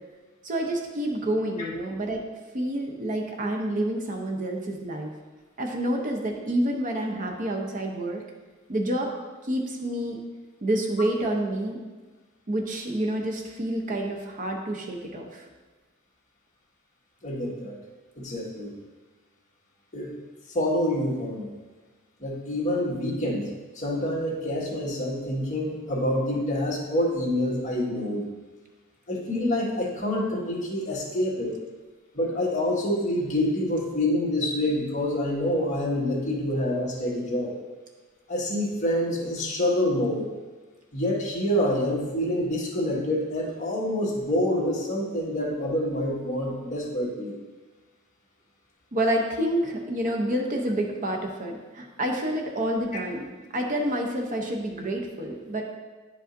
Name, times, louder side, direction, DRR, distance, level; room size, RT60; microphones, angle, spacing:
voice 1, 0.4-2.2 2.5-5.1 5.6-8.2 8.7-9.1 9.4-10.2 10.6-11.8 12.5-15.5 48.9-53.3 53.5-55.6, right 1 dB, 40° right, 1 dB, 0.7 m, -28 dB
voice 2, 17.2-17.8 18.2-18.7 19.9-20.1 20.5-21.5 22.2-23.5 23.7-28.3 29.1-31.5 32.1-37.5 38.3-40.3 40.9-47.3, left 1 dB, 35° left, -5 dB, 1.6 m, -27 dB
10.0 x 5.1 x 2.6 m, 1.3 s
head